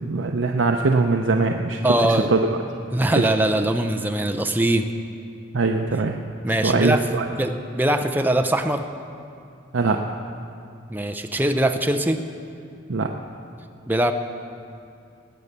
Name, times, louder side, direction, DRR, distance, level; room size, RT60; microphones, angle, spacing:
voice 1, 0.0-1.8 2.3-2.4 3.2-3.3 5.5-6.2 6.6-7.3 9.7-10.2 12.9-13.1, right 3 dB, 80° right, 3 dB, 0.6 m, -21 dB
voice 2, 1.8-2.3 2.9-4.9 6.4-7.0 7.3-8.8 10.9-12.2 13.9-14.1, right 1 dB, 10° right, 6 dB, 0.6 m, -22 dB
19.0 x 8.2 x 6.7 m, 2.5 s
head